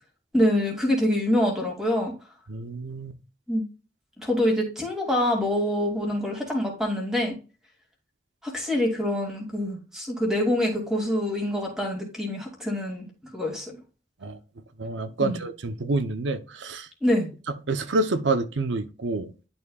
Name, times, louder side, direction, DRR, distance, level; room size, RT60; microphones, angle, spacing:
voice 1, 0.3-2.1 3.5-3.6 4.2-7.4 8.4-13.1 13.3-13.8 15.2-15.4 17.0-17.3, left 1 dB, 5° right, 2.3 m, -25 dB
voice 2, 2.5-3.1 14.2-14.4 14.8-16.9 17.7-19.3, right 2 dB, 85° right, 0.7 m, -28 dB
11.0 x 4.3 x 2.3 m
head